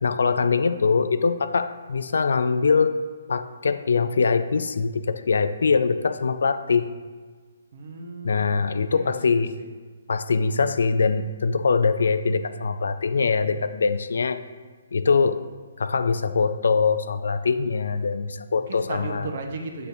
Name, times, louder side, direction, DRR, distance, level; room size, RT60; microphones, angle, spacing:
voice 1, 0.0-3.0 3.3-6.9 8.2-9.5 10.1-14.4 14.9-15.4 15.8-19.3, left 5 dB, 70° left, 11 dB, 0.3 m, -23 dB
voice 2, 7.7-9.7 18.7-19.9, right 3 dB, 55° right, 3 dB, 0.9 m, -36 dB
8.5 x 4.2 x 2.7 m, 1.5 s
figure-of-eight pair, 135°, 0 cm